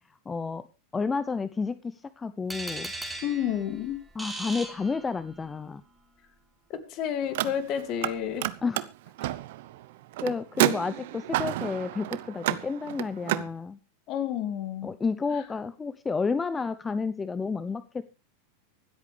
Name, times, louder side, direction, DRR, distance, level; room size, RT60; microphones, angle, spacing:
voice 1, 0.3-0.7 0.9-2.9 4.2-5.8 8.6-8.9 10.2-13.8 14.8-18.0, left 4 dB, 20° left, 14 dB, 0.7 m, -31 dB
sound 1, 2.5-5.5, right 2 dB, 5° right, 3.6 m, -38 dB
voice 2, 3.2-4.0 6.7-8.5 14.1-15.0, left 9 dB, 45° left, 10 dB, 2.4 m, -30 dB
Car, 7.2-8.1 8.4-13.5, right 16 dB, 65° right, 0.8 m, -30 dB
24.5 x 8.4 x 3.3 m, 0.30 s
hypercardioid pair, 95°, 0 cm